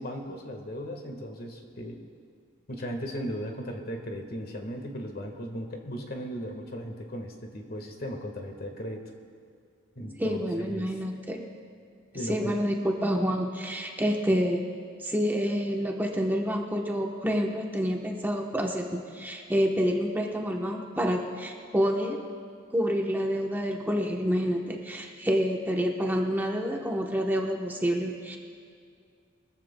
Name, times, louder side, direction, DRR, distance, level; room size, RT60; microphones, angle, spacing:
voice 1, 0.0-2.0 2.7-9.0 9.9-10.9 12.1-12.4, equal, 50° left, 3 dB, 1.5 m, -37 dB
voice 2, 10.2-11.4 12.2-14.7 15.0-22.2 22.7-28.4, equal, 10° right, 0 dB, 0.9 m, -28 dB
23.0 x 14.0 x 2.2 m, 2.3 s
head